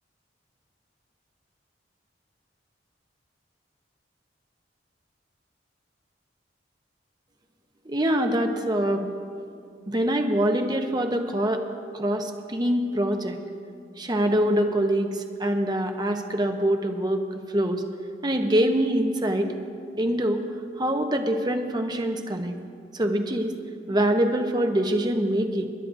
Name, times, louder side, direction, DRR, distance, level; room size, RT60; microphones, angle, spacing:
voice 1, 7.8-9.1 9.9-11.6 11.9-13.4 14.0-17.2 17.5-17.8 18.2-19.5 20.0-20.4 20.8-22.5 22.9-23.5 23.9-25.7, right 1 dB, 25° right, 5 dB, 0.9 m, -24 dB
28.0 x 11.5 x 2.7 m, 2.3 s
head